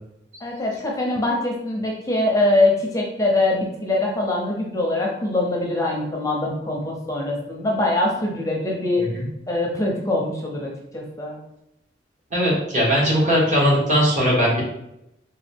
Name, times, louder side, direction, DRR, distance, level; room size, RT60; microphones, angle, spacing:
voice 1, 0.4-9.0 9.5-11.4, left 2 dB, 20° left, -2 dB, 0.5 m, -23 dB
voice 2, 12.3-14.6, equal, 45° right, -5 dB, 1.3 m, -19 dB
3.9 x 2.2 x 3.4 m, 0.85 s
head